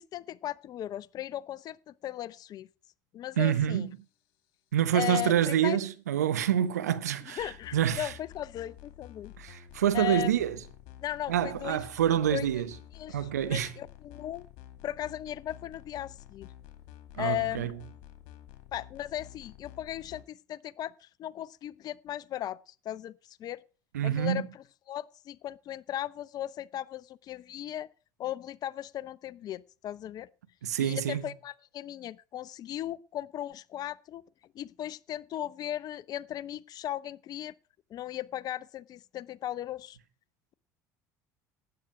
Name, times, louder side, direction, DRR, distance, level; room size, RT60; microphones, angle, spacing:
voice 1, 0.0-2.7 3.1-3.9 4.9-5.8 7.3-9.3 9.9-10.3 11.0-11.9 12.3-12.5 12.9-14.5 14.8-16.5 17.2-17.7 18.7-23.6 24.0-27.9 28.2-30.3 30.8-34.2 34.5-37.5 37.9-40.0, left 12 dB, 50° left, 0.6 m, -37 dB
voice 2, 3.4-3.9 4.7-8.1 9.4-10.6 11.3-12.7 13.1-13.7 17.1-17.7 23.9-24.4 30.6-31.2, right 10 dB, 85° right, 1.0 m, -27 dB
sound 1, 7.4-20.2, left 12 dB, 65° left, 2.2 m, -50 dB
12.5 x 8.8 x 5.0 m
hypercardioid pair, 70°, 9 cm